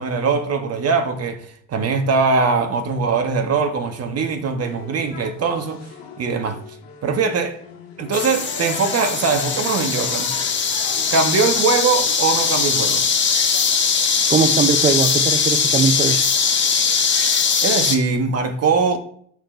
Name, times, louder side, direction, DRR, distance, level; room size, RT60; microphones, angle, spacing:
voice 1, 0.0-5.8 6.2-6.6 7.0-7.6 8.0-10.3 11.1-13.0 17.6-19.0, right 4 dB, 45° right, 1.5 m, -21 dB
sound 1, 4.6-12.2, left 7 dB, 70° left, 1.9 m, -39 dB
sound 2, 8.1-18.0, left 6 dB, 30° left, 1.5 m, -20 dB
voice 2, 14.3-16.3, right 5 dB, 20° right, 0.6 m, -20 dB
6.6 x 5.9 x 3.3 m
hypercardioid pair, 65°, 35 cm